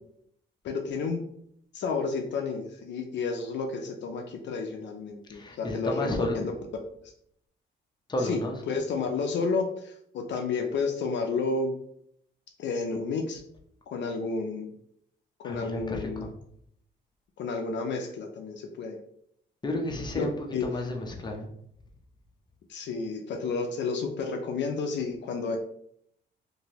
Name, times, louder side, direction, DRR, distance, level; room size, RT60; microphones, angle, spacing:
voice 1, 0.6-1.2 1.7-6.5 8.2-8.4 8.7-11.7 12.6-13.4 13.9-14.7 15.4-16.3 17.4-19.0 20.1-20.3 20.5-20.7 22.7-25.6, left 4 dB, 65° left, 3 dB, 0.5 m, -31 dB
voice 2, 5.3-6.5 8.1-8.6 15.4-16.3 19.6-21.5, left 1 dB, 20° left, 1 dB, 0.6 m, -32 dB
2.9 x 2.6 x 2.8 m, 0.70 s
cardioid pair, 90°, 20 cm